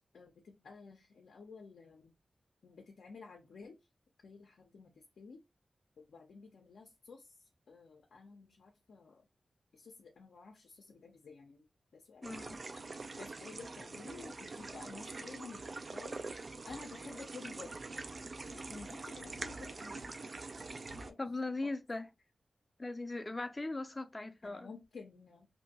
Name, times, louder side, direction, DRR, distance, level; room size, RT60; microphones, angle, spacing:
voice 1, 0.0-2.1 2.6-3.8 4.2-5.4 6.0-7.4 7.7-9.3 9.7-11.7 11.9-16.2 16.6-17.7 18.5-20.2 20.9-21.2 21.6-21.7 24.4-25.5, left 4 dB, 85° left, 0.5 m, -52 dB
voice 2, 12.2-12.6 21.2-22.1 22.8-24.7, left 2 dB, 35° left, 0.4 m, -39 dB
sound 1, 12.2-21.1, right 3 dB, 55° right, 0.4 m, -44 dB
2.7 x 2.1 x 2.8 m
cardioid pair, 45°, 0 cm